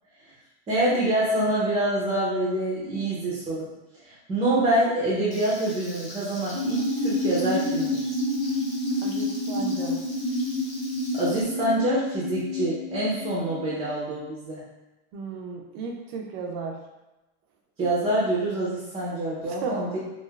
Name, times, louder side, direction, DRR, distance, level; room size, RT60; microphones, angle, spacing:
voice 1, 0.7-3.7 4.0-8.1 11.1-14.6 17.8-20.0, right 1 dB, 20° right, -7 dB, 0.7 m, -26 dB
Frying (food), 5.3-11.4, left 1 dB, 20° left, 0.7 m, -43 dB
sound 1, 6.5-13.9, left 1 dB, 80° left, 1.5 m, -28 dB
voice 2, 9.0-10.1 15.1-16.8 19.5-19.9, right 4 dB, 60° right, 2 dB, 0.6 m, -34 dB
3.2 x 2.6 x 2.3 m, 1.0 s
supercardioid pair, 135°, 35 cm